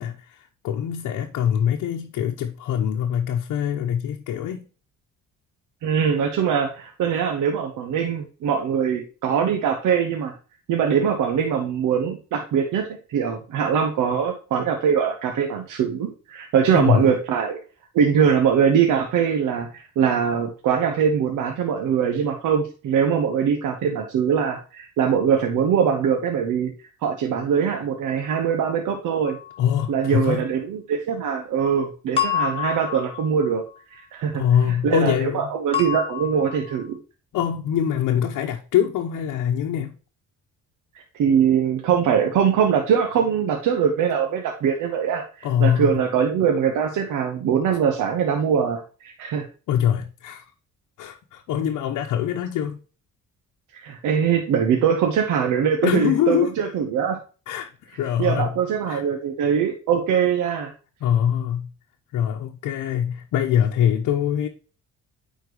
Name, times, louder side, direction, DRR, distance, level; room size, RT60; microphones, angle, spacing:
voice 1, 0.0-4.7 16.7-17.1 29.6-30.5 34.3-35.5 37.3-39.9 45.4-45.9 49.7-50.4 51.0-52.8 55.8-56.5 57.5-58.5 58.9-59.0 61.0-61.7 62.1-64.5, left 9 dB, 85° left, 0.9 m, -23 dB
voice 2, 5.8-10.3 10.7-17.6 17.9-26.7 27.0-29.4 29.9-33.6 33.9-34.4 34.7-37.0 41.1-49.4 53.7-57.2 58.2-60.7, right 7 dB, 85° right, 1.2 m, -22 dB
sound 1, 29.2-29.7 32.2-33.8 35.7-36.9, left 9 dB, 20° left, 2.7 m, -28 dB
9.3 x 4.5 x 3.0 m
cardioid pair, 90°, 30 cm